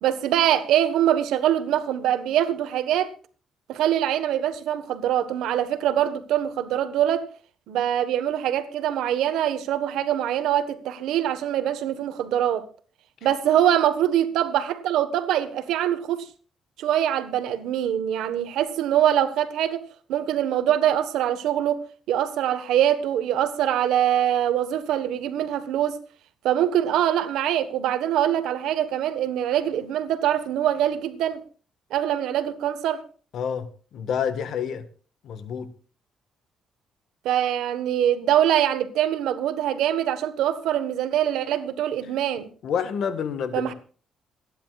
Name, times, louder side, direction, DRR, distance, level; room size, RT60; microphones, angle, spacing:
voice 1, 0.0-3.1 3.7-7.2 7.7-12.6 13.2-16.3 16.8-19.8 20.1-21.8 22.1-26.0 26.4-31.4 31.9-33.0 37.2-42.5 43.5-43.7, right 11 dB, 85° right, 1.3 m, -23 dB
voice 2, 33.3-34.8 35.2-35.7 42.6-43.7, left 7 dB, 70° left, 1.5 m, -28 dB
27.0 x 10.0 x 2.4 m
cardioid pair, 90°, 0 cm